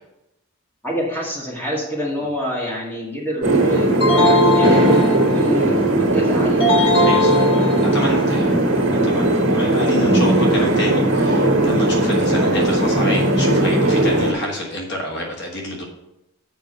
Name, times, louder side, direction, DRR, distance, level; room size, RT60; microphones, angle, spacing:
voice 1, 0.8-6.6 12.9-13.2, equal, 10° left, -4 dB, 2.0 m, -27 dB
sound 1, 3.4-14.3, right 1 dB, 60° right, 1.7 m, -18 dB
sound 2, 4.0-5.6 6.6-8.2, left 1 dB, 25° left, 1.5 m, -19 dB
voice 2, 7.0-7.4 7.8-8.5 8.9-15.8, left 1 dB, 50° left, 0 dB, 1.4 m, -28 dB
7.2 x 5.2 x 6.7 m, 0.88 s
head